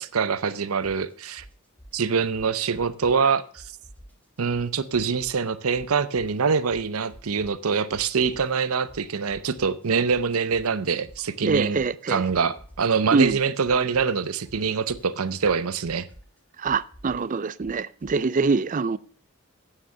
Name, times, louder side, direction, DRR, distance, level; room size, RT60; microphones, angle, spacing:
voice 1, 0.0-1.4 1.9-3.6 4.4-11.8 12.1-16.1, right 5 dB, 90° right, 0.7 m, -24 dB
sound 1, 0.8-1.1 1.4-3.3 3.5-5.5 5.7-7.7 7.9-12.0 12.3-18.2, equal, 10° left, 2.3 m, -49 dB
voice 2, 11.4-12.2 13.1-13.4 16.6-19.0, right 4 dB, 35° right, 0.4 m, -24 dB
8.8 x 7.3 x 6.6 m
head